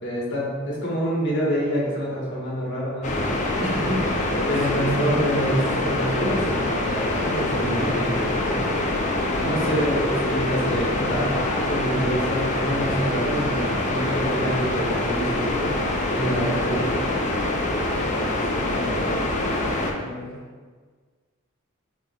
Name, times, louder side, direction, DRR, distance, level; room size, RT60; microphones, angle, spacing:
voice 1, 0.0-8.6 9.4-15.7 16.1-17.0, equal, 60° left, -5 dB, 1.0 m, -27 dB
sound 1, 3.0-19.9, left 1 dB, 35° left, 0.4 m, -25 dB
voice 2, 4.3-5.0 5.6-6.1 9.1-9.8 10.3-10.5 17.7-20.4, left 1 dB, 85° left, -6 dB, 0.6 m, -36 dB
4.5 x 2.4 x 2.7 m, 1.5 s
head